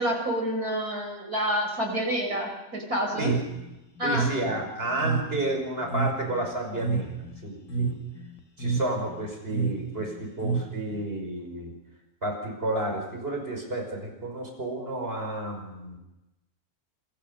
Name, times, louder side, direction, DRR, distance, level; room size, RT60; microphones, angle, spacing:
voice 1, 0.0-3.3 4.0-4.3, equal, 70° right, 3 dB, 5.8 m, -28 dB
sound 1, 3.1-11.0, right 5 dB, 65° left, 2.4 m, -30 dB
voice 2, 4.0-7.9 8.6-11.7 12.2-16.0, right 1 dB, 40° right, 2 dB, 5.9 m, -31 dB
27.0 x 22.0 x 5.5 m, 0.98 s
omnidirectional pair, 1.6 m